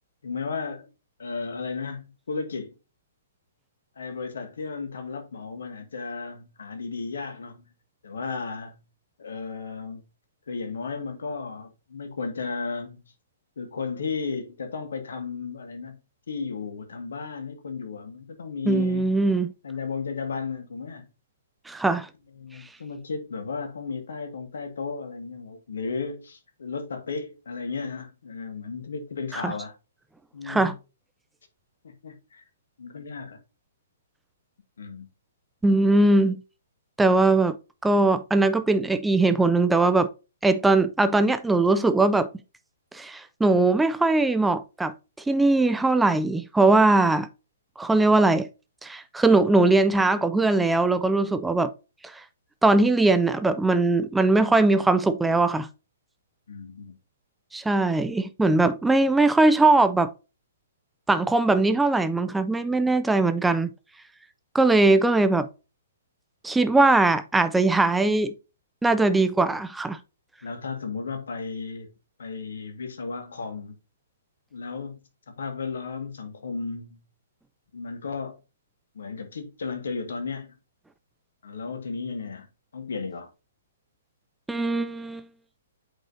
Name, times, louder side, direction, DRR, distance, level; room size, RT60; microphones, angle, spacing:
voice 1, 0.2-0.9 1.2-2.8 4.0-7.7 8.0-8.8 9.2-10.0 10.5-13.0 13.6-16.0 16.3-19.1 19.6-21.1 22.4-29.7 30.3-30.8 31.8-32.4 32.8-33.4 34.8-35.1 56.5-57.0 70.4-71.9 72.2-73.8 74.5-75.0 75.3-77.0 77.7-78.4 78.9-80.5 81.4-82.5 82.7-83.3, left 4 dB, 65° left, 1.8 m, -34 dB
voice 2, 18.7-19.5 21.7-22.1 29.3-29.5 30.5-30.7 35.6-36.4 37.0-37.6 37.8-40.1 40.4-42.3 42.9-44.9 45.3-47.3 47.8-48.5 48.8-51.7 52.0-52.1 52.6-55.7 57.5-60.1 61.1-63.7 64.5-65.5 66.4-68.3 68.8-70.0 84.5-85.2, right 2 dB, 5° right, 0.4 m, -20 dB
8.4 x 5.3 x 2.7 m
figure-of-eight pair, 120°, 0 cm